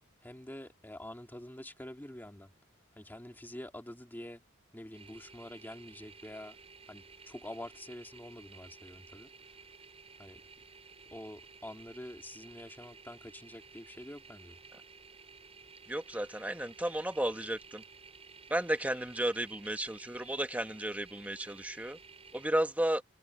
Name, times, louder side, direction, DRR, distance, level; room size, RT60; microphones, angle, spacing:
voice 1, 0.2-2.5 3.0-4.4 4.7-6.6 6.9-9.3 10.2-10.4 11.1-14.6, left 1 dB, 10° left, 1.9 m, -47 dB
sound 1, 4.9-22.5, right 5 dB, 30° right, 6.6 m, -55 dB
voice 2, 15.9-17.8 18.5-22.0 22.3-23.0, right 1 dB, 5° right, 1.3 m, -33 dB
head